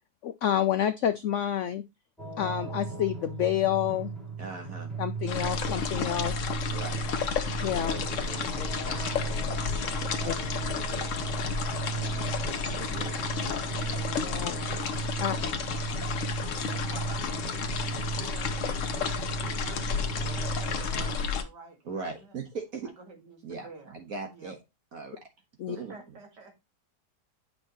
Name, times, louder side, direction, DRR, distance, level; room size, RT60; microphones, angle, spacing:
voice 1, 0.2-1.8 2.4-4.1 5.0-6.4 7.6-7.9 10.2-10.3 14.2-14.6 15.2-15.4 25.6-25.8, left 10 dB, 70° left, 0.7 m, -28 dB
sound 1, 2.2-21.1, right 5 dB, ahead, 2.2 m, -36 dB
voice 2, 4.4-4.9 6.7-7.0 7.7-9.6 10.0-11.5 12.0-13.2 13.5-14.0 21.8-22.9 23.4-24.6 24.9-25.2 25.7-26.0, right 4 dB, 60° right, 1.7 m, -41 dB
sound 2, 5.3-21.4, left 6 dB, 55° left, 1.1 m, -32 dB
voice 3, 16.7-19.2 19.6-22.4 23.0-24.0 24.3-24.5 25.7-26.5, right 2 dB, 85° right, 2.6 m, -49 dB
8.8 x 5.4 x 2.9 m
omnidirectional pair, 1.8 m